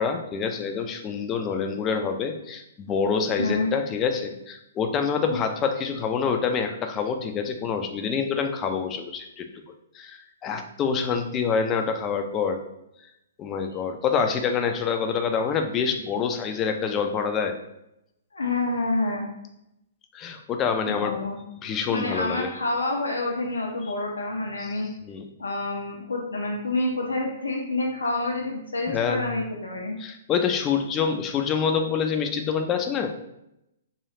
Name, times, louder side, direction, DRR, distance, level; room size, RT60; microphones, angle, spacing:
voice 1, 0.0-9.5 9.9-12.6 13.4-17.5 20.1-21.2 21.6-22.5 24.6-24.7 25.1-25.2 28.9-29.2 30.0-33.1, left 6 dB, 25° left, 5 dB, 0.4 m, -26 dB
voice 2, 3.4-3.7 5.3-5.4 18.3-19.3 20.9-21.4 21.9-24.9 25.4-30.0, left 2 dB, 80° left, 0 dB, 0.5 m, -28 dB
3.0 x 2.3 x 2.8 m, 0.83 s
figure-of-eight pair, 120°, 0 cm